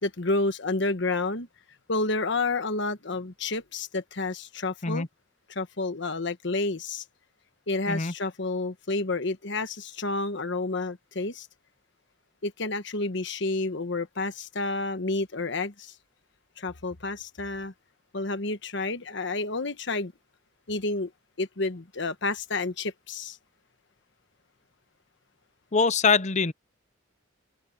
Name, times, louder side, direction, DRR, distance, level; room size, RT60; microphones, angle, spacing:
voice 1, 0.0-1.5 1.9-5.1 5.5-7.0 7.7-11.5 12.4-15.9 16.6-17.7 18.1-20.1 20.7-21.1 21.4-23.4, left 3 dB, 65° left, 1.3 m, -30 dB
voice 2, 25.7-26.5, left 4 dB, 35° left, 0.8 m, -23 dB
open air
head